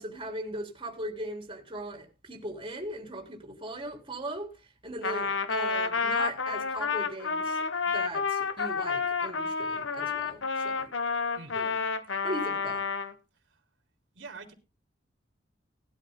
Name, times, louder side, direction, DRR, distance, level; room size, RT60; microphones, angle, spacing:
voice 1, 0.0-4.5 4.8-10.9 11.6-11.7 12.2-12.8, right 1 dB, 25° right, 3.6 m, -39 dB
Trumpet, 5.0-13.1, left 5 dB, 90° left, 1.3 m, -30 dB
voice 2, 11.3-11.7 13.3-13.6 14.1-14.5, right 3 dB, 85° right, 3.5 m, -46 dB
19.0 x 12.5 x 2.2 m
head